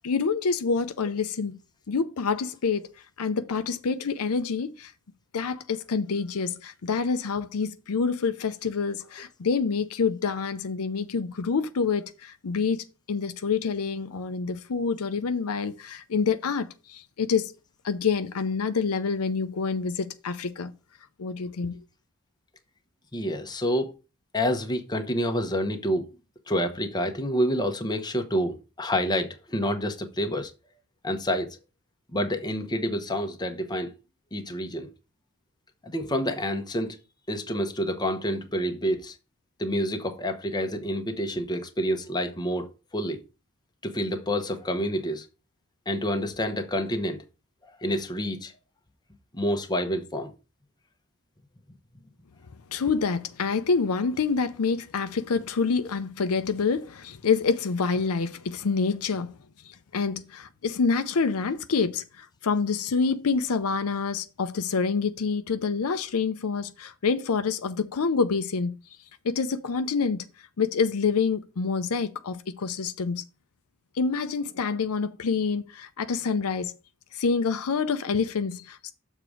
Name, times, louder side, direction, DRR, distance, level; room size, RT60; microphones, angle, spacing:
voice 1, 0.0-1.6 1.9-2.9 3.2-4.9 5.3-17.5 17.8-20.7 21.2-21.8 52.7-59.3 59.7-68.7 69.2-70.3 70.6-73.2 73.9-76.7 77.1-78.9, left 5 dB, 70° left, 0.6 m, -27 dB
voice 2, 23.1-24.0 24.3-26.1 26.5-30.5 31.0-31.6 32.1-33.9 34.3-34.9 35.8-37.0 37.3-39.1 39.6-43.2 43.8-45.3 45.9-47.2 47.8-48.5 49.3-50.3, equal, 20° left, 0.9 m, -28 dB
6.8 x 3.6 x 6.3 m
head